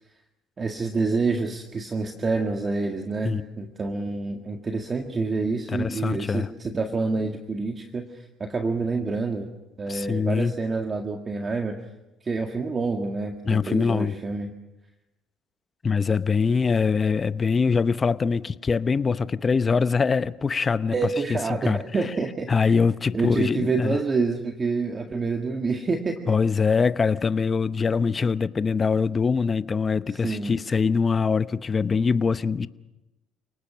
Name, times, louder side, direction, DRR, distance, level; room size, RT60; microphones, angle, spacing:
voice 1, 0.6-9.5 9.8-11.8 12.2-14.5 20.9-22.7 23.1-26.4 30.1-30.6, right 3 dB, 30° right, 1.9 m, -27 dB
voice 2, 5.7-6.5 9.9-10.5 13.5-14.1 15.8-20.9 21.3-21.8 22.5-24.0 26.3-32.7, left 5 dB, 30° left, 0.8 m, -23 dB
29.5 x 19.0 x 6.3 m
supercardioid pair, 85°, 0 cm